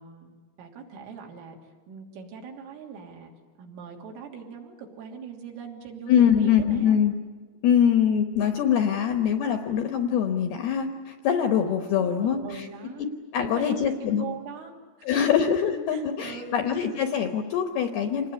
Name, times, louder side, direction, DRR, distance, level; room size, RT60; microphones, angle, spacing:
voice 1, 0.0-1.6 1.9-3.3 3.6-7.0 12.0-13.1 13.4-15.1 15.9-16.7, right 6 dB, 70° right, 1 dB, 5.4 m, -41 dB
voice 2, 6.1-7.1 7.6-12.7 13.0-13.1 13.3-14.2 15.1-18.3, left 8 dB, 70° left, 6 dB, 2.5 m, -23 dB
27.0 x 19.5 x 9.8 m, 1.5 s
omnidirectional pair, 5.9 m